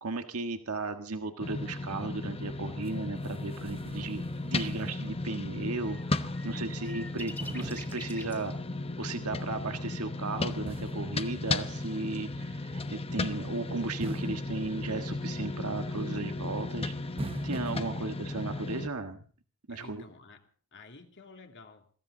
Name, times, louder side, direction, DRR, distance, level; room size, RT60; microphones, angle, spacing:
voice 1, 0.0-8.5 9.0-16.9 17.4-19.2 19.7-20.0, right 3 dB, 80° right, 1.6 m, -35 dB
sound 1, 1.4-18.9, left 2 dB, 25° left, 1.0 m, -35 dB
sound 2, 2.9-3.0 3.2-5.3 5.6-5.7 7.4-8.7 10.7-12.1 14.0-15.5 17.2-17.9, right 2 dB, 25° right, 0.8 m, -43 dB
sound 3, 4.8-4.9 5.4-8.6 9.0-9.1 9.6-9.9 10.2-10.3 10.5-11.7 12.2-12.3 13.4-16.7 17.2-18.4, left 2 dB, 10° left, 2.6 m, -51 dB
voice 2, 6.4-7.2 17.9-18.1 19.7-21.9, left 3 dB, 55° left, 2.7 m, -53 dB
22.5 x 16.0 x 3.9 m
head